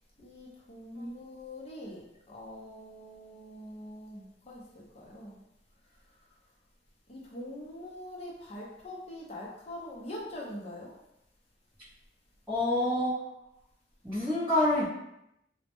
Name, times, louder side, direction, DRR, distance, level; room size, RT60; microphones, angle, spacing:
voice 1, 0.2-5.4 7.1-10.9, left 1 dB, 35° left, -3 dB, 0.5 m, -43 dB
voice 2, 12.5-13.2 14.0-14.9, left 1 dB, 10° right, -12 dB, 0.6 m, -27 dB
2.1 x 2.0 x 2.9 m, 0.84 s
head